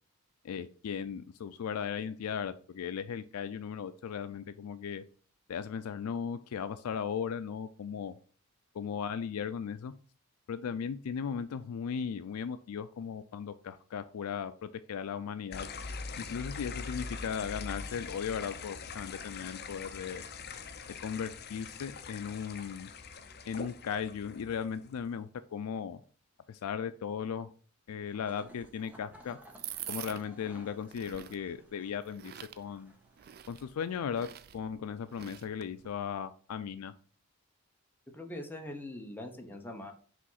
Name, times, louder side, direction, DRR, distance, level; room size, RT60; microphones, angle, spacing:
voice 1, 0.4-5.0 5.5-8.1 8.7-9.9 10.5-15.7 16.2-20.2 21.0-22.9 23.5-26.0 26.5-27.5 27.9-29.4 29.9-32.9 33.5-36.9, left 7 dB, 90° left, 12 dB, 0.4 m, -37 dB
sound 1, 15.5-25.0, left 4 dB, 50° left, 0.6 m, -43 dB
sound 2, 28.0-33.8, equal, 5° right, 1.2 m, -58 dB
sound 3, 28.4-35.9, right 11 dB, 45° right, 0.3 m, -47 dB
voice 2, 38.1-39.9, left 1 dB, 10° left, 3 dB, 1.0 m, -42 dB
5.0 x 3.6 x 5.6 m, 0.42 s
head